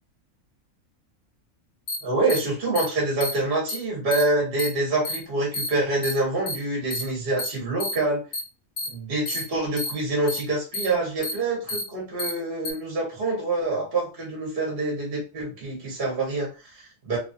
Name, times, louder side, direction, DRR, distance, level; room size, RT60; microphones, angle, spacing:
sound 1, 1.9-2.0 2.3-2.4 2.7-2.8 3.2-3.3 3.7-3.8 4.1-4.2 4.6-4.7 5.0-5.2 5.5-5.7 6.0-6.1 6.5-6.6 6.9-7.0 7.4-7.5 7.8-7.9 8.3-8.4 8.8-8.9 9.2-9.4 9.8-9.9 10.3-10.4 10.7-10.8 11.2-11.3 11.7-11.8 12.2-12.3 12.6-12.7, left 2 dB, 30° left, 0.8 m, -29 dB
voice 1, 2.0-8.2 8.9-17.2, right 2 dB, 45° right, -2 dB, 1.2 m, -26 dB
3.0 x 2.3 x 2.6 m, 0.32 s
omnidirectional pair, 1.4 m